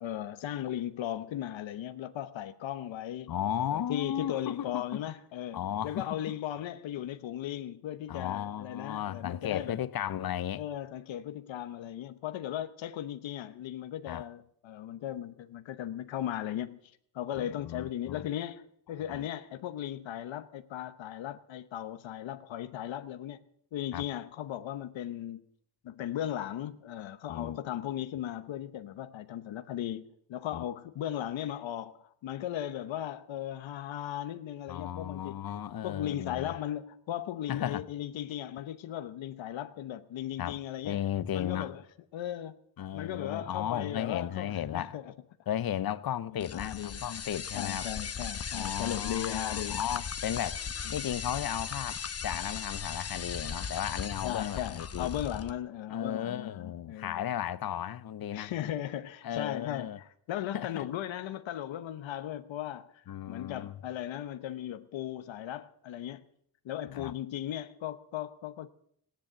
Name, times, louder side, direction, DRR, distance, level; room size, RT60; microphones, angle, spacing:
voice 1, 0.0-3.3 3.7-9.8 10.5-23.4 23.7-25.4 25.8-35.4 35.8-41.0 41.3-41.8 42.1-42.6 42.9-45.1 46.3-47.0 47.5-49.8 54.2-57.3 58.3-66.2 66.6-68.7, left 11 dB, 85° left, 1.0 m, -37 dB
voice 2, 3.3-5.0 5.5-6.3 8.1-10.6 14.1-14.3 17.4-18.3 19.1-19.3 23.9-24.1 27.3-27.6 30.5-30.6 34.7-36.5 37.5-37.8 40.4-40.6 40.8-41.7 42.8-45.0 45.5-47.9 48.5-50.6 50.9-55.1 55.9-58.5 59.2-60.0 60.5-60.9 63.1-63.8 66.9-67.1, left 10 dB, 55° left, 0.7 m, -35 dB
sound 1, 46.4-55.5, left 6 dB, 35° left, 1.0 m, -37 dB
16.5 x 10.5 x 7.9 m
cardioid pair, 115°, 45 cm